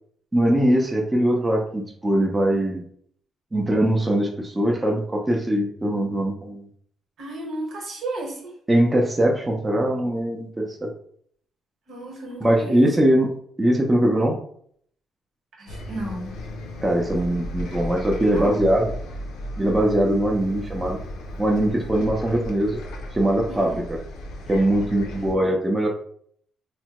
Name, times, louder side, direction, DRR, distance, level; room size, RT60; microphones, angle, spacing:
voice 1, 0.3-2.8 3.5-6.7 8.7-10.9 12.4-13.3 13.6-14.4 16.8-18.9 19.6-21.0 21.4-22.8 23.1-23.7 24.5-25.9, right 1 dB, 15° right, 0 dB, 0.5 m, -21 dB
voice 2, 7.2-8.5 11.9-12.8 15.6-16.3 18.2-18.6 23.5-23.9, right 2 dB, 70° right, -1 dB, 1.2 m, -33 dB
Bus, 15.7-25.3, equal, 90° left, 0.5 m, -35 dB
3.3 x 2.1 x 2.9 m, 0.63 s
cardioid pair, 90°, 0 cm